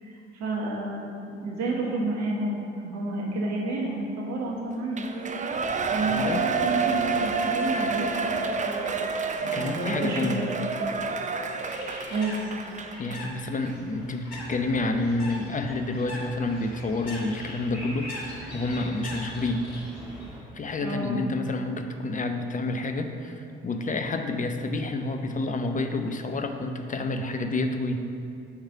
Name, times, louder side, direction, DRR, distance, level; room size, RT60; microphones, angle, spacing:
voice 1, 0.0-5.0 5.9-8.9 9.4-10.5 11.5-11.8 12.1-12.3 20.8-21.1, right 2 dB, 65° right, -3 dB, 1.5 m, -30 dB
Shout / Cheering, 4.9-13.3 13.7-13.8, right 4 dB, 25° right, 0.5 m, -29 dB
voice 2, 6.1-6.5 9.5-10.4 13.0-19.7 20.5-28.0, left 2 dB, 25° left, 6 dB, 0.7 m, -29 dB
Bird, 11.5-20.3, left 1 dB, 60° left, 1.8 m, -42 dB
sound 1, 14.3-20.4, equal, 5° right, 1.6 m, -46 dB
8.5 x 3.2 x 5.5 m, 2.5 s
figure-of-eight pair, 45°, 30 cm